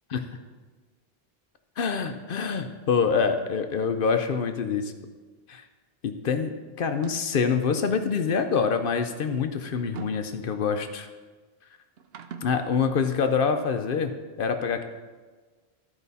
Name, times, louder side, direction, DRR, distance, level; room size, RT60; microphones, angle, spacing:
voice 1, 1.8-4.9 5.5-5.6 6.0-11.1 12.4-14.1 14.4-14.8, left 6 dB, 60° left, 7 dB, 0.8 m, -26 dB
sound 1, 6.8-7.4 8.4-10.9 12.0-12.6, right 7 dB, 75° right, 0.8 m, -44 dB
13.0 x 4.9 x 4.1 m, 1.3 s
omnidirectional pair, 1.1 m